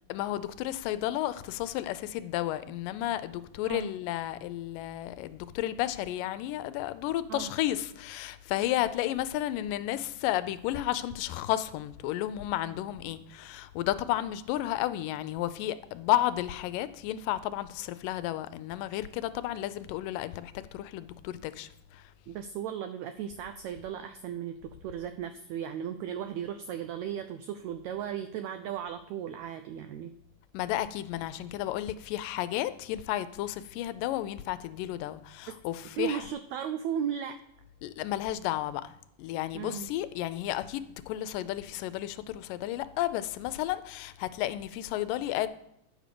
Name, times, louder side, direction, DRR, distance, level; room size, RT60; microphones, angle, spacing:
voice 1, 0.1-22.0 30.5-36.2 37.8-38.9 39.2-45.5, left 14 dB, 90° left, 2.2 m, -32 dB
voice 2, 22.3-24.5 24.8-30.1 35.5-35.6 36.0-37.4 39.5-39.9, right 9 dB, 90° right, 1.5 m, -36 dB
10.0 x 5.1 x 6.7 m
omnidirectional pair, 3.8 m